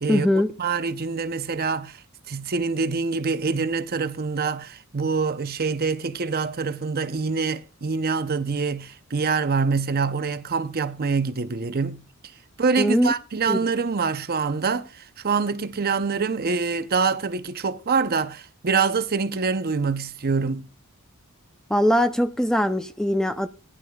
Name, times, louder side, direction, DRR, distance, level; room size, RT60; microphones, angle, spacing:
voice 1, 0.1-0.5 12.8-13.1 13.5-13.6 21.7-23.5, equal, 5° left, 0.5 m, -21 dB
voice 2, 0.6-12.0 12.6-20.7, right 4 dB, 45° right, 0.7 m, -25 dB
19.0 x 11.0 x 2.3 m
head